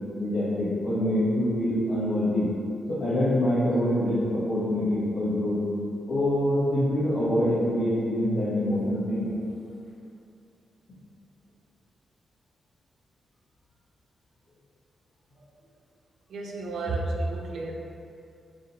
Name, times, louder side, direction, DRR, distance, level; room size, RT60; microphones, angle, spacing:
voice 1, 0.2-2.5 2.9-5.6 6.1-9.3, left 1 dB, 65° left, -13 dB, 0.7 m, -25 dB
voice 2, 16.3-17.7, right 2 dB, 70° right, -1 dB, 0.3 m, -31 dB
2.8 x 2.1 x 2.5 m, 2.5 s
wide cardioid pair, 135°, 0 cm